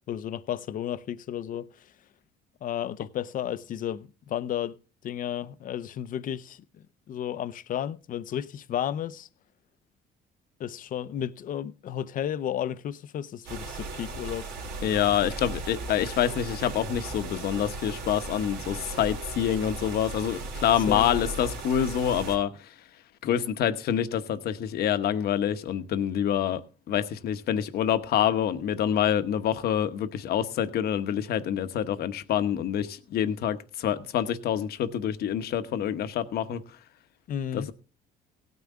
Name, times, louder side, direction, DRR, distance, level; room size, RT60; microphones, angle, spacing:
voice 1, 0.1-1.7 2.6-4.8 5.0-6.6 7.1-9.3 10.6-14.5 20.9-21.1 37.3-37.7, left 10 dB, 55° left, 0.7 m, -33 dB
sound 1, 13.5-22.4, right 2 dB, 85° right, 3.2 m, -37 dB
voice 2, 14.8-22.5 23.2-26.6 26.9-36.6 37.5-37.7, left 10 dB, 70° left, 1.1 m, -26 dB
17.0 x 9.4 x 3.6 m
cardioid pair, 110°, 17 cm